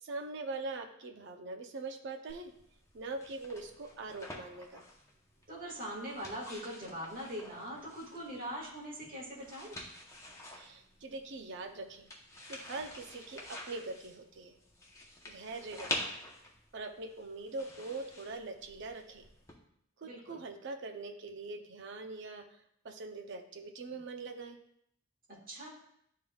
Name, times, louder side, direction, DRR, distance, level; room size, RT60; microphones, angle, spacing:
voice 1, 0.0-2.5 2.9-4.8 10.5-12.1 12.5-14.5 15.2-16.1 16.7-19.3 20.0-24.6, right 3 dB, 60° right, 4 dB, 0.6 m, -43 dB
sound 1, 2.3-19.5, left 1 dB, 15° left, 0.8 m, -47 dB
voice 2, 5.5-9.8 20.0-20.4 25.5-25.7, equal, 45° right, -4 dB, 1.9 m, -42 dB
11.0 x 3.7 x 2.3 m, 0.72 s
head